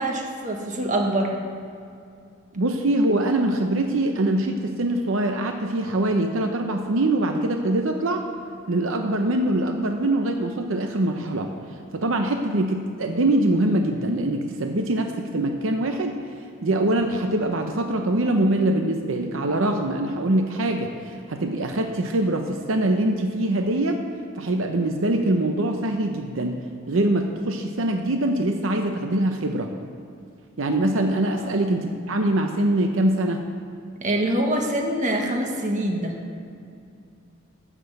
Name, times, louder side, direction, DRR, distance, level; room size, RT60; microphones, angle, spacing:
voice 1, 0.0-1.3 31.4-31.5 34.0-36.1, right 1 dB, 40° right, 1 dB, 1.5 m, -25 dB
voice 2, 2.5-8.2 8.7-11.5 11.9-16.2 16.6-24.0 24.4-26.6 26.9-29.7 30.6-33.4, right 1 dB, 80° right, 4 dB, 0.8 m, -23 dB
12.0 x 6.2 x 7.8 m, 2.4 s
head